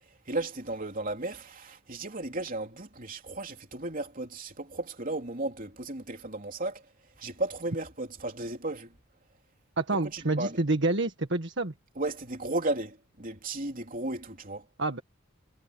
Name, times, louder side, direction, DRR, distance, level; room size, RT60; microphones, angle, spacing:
voice 1, 0.3-6.8 7.2-8.9 10.0-10.6 12.0-14.7, right 2 dB, 40° right, 3.4 m, -34 dB
voice 2, 9.8-11.7 14.8-15.0, right 2 dB, 55° right, 1.7 m, -28 dB
head